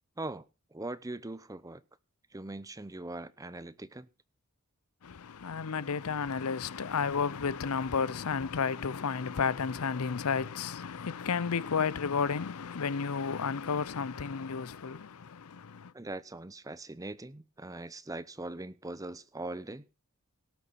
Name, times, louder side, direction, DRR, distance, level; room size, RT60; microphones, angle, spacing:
voice 1, 0.7-1.8 2.3-4.1 15.9-20.0, right 2 dB, 15° right, 0.7 m, -41 dB
voice 2, 5.0-15.9, left 5 dB, 85° left, 0.6 m, -32 dB
18.0 x 6.9 x 5.6 m
head